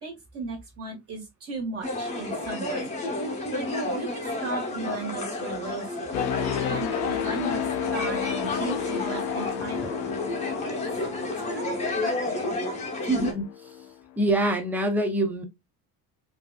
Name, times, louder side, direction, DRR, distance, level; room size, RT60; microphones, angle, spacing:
voice 1, 0.0-3.0 3.5-3.7 3.9-6.2 6.7-10.0 10.7-10.8 11.5-12.6, right 3 dB, 35° right, 1.8 m, -36 dB
sound 1, 1.8-13.3, left 2 dB, 15° left, 0.8 m, -31 dB
sound 2, 6.1-13.9 14.4-14.6, left 11 dB, 75° left, 0.6 m, -33 dB
voice 2, 13.0-13.7 14.2-15.4, right 1 dB, 5° right, 0.4 m, -25 dB
5.3 x 2.6 x 2.3 m
cardioid pair, 180°, 43 cm